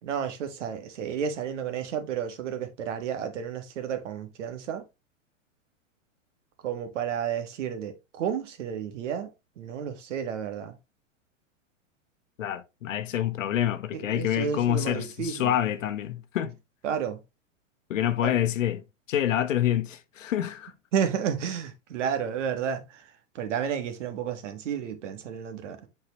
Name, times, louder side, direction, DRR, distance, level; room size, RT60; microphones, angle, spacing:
voice 1, 0.0-4.8 6.6-9.3 9.6-10.8 13.9-15.5 16.8-17.2 18.2-18.4 20.9-23.1 23.3-25.9, right 8 dB, 65° right, 1.7 m, -31 dB
voice 2, 12.4-16.5 17.9-20.7, left 11 dB, 75° left, 1.0 m, -27 dB
7.8 x 4.8 x 3.0 m
hypercardioid pair, 115°, 39 cm